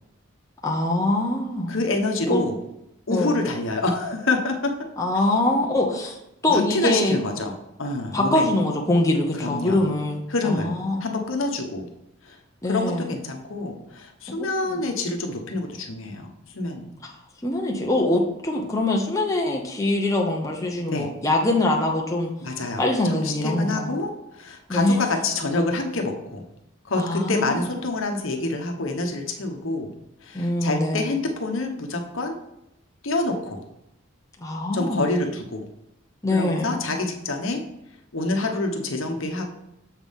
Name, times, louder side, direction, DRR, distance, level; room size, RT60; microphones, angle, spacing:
voice 1, 0.6-1.7 2.3-2.4 3.1-3.3 5.0-6.2 6.4-7.2 8.1-11.0 12.6-13.1 14.3-14.5 17.4-22.3 22.8-23.9 24.7-25.0 26.9-27.8 30.3-31.1 34.4-35.1 36.2-36.8, left 1 dB, 15° left, 0 dB, 0.8 m, -23 dB
voice 2, 1.7-2.6 3.1-4.8 6.5-8.5 9.4-9.9 10.3-10.7 11.0-11.9 12.2-12.4 12.6-16.3 16.5-16.9 20.9-21.1 22.4-26.4 26.8-29.9 30.2-32.4 33.0-33.6 34.7-35.7 36.3-37.6 38.1-39.5, left 2 dB, 70° left, 3 dB, 1.0 m, -27 dB
7.3 x 5.9 x 3.6 m, 0.84 s
head